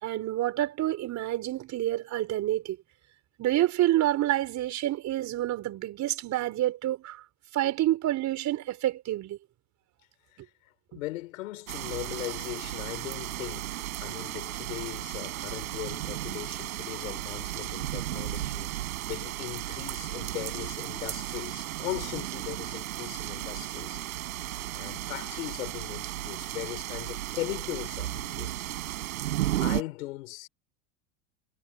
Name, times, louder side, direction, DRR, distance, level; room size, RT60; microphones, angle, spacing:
voice 1, 0.0-2.8 3.4-7.2 7.5-9.4, right 14 dB, 40° right, 4.6 m, -28 dB
voice 2, 10.9-24.0 24.7-28.7 29.6-30.5, left 18 dB, 75° left, 5.8 m, -39 dB
sound 1, 11.7-29.8, right 15 dB, 80° right, 8.0 m, -34 dB
hypercardioid pair, 110°, 41 cm